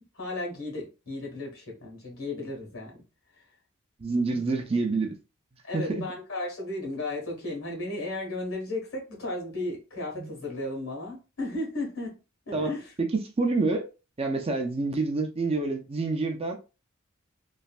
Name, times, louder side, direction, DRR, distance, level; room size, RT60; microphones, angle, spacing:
voice 1, 0.1-3.0 4.3-4.4 5.6-12.2 12.5-12.9, left 2 dB, 80° left, 1.5 m, -34 dB
voice 2, 4.0-5.2 5.7-6.0 10.2-10.3 12.5-12.7 13.0-13.1 13.4-13.9 14.2-16.6, right 3 dB, 30° right, 0.5 m, -27 dB
3.1 x 2.5 x 2.4 m
head